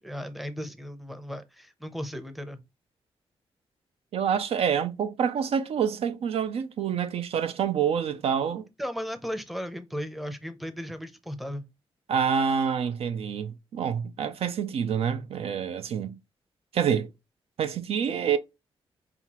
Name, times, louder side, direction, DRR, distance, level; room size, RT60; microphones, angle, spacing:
voice 1, 0.0-2.6 8.8-11.7, equal, ahead, 0.6 m, -36 dB
voice 2, 4.1-8.6 12.1-16.2 16.7-17.1 17.6-18.4, right 7 dB, 75° right, 0.5 m, -27 dB
5.6 x 2.4 x 2.9 m
wide cardioid pair, 125°, 10 cm